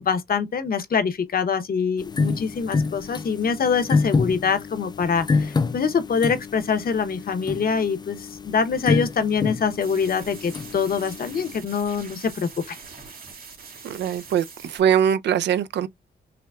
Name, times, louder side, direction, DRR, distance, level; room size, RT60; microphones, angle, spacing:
voice 1, 0.0-12.7, left 6 dB, 60° left, 0.9 m, -24 dB
sound 1, 2.0-11.6, left 4 dB, 25° left, 0.3 m, -28 dB
sound 2, 9.8-14.8, right 5 dB, 55° right, 2.0 m, -43 dB
voice 2, 13.8-15.9, right 9 dB, 85° right, 0.4 m, -22 dB
5.8 x 2.2 x 2.4 m
cardioid pair, 80°, 18 cm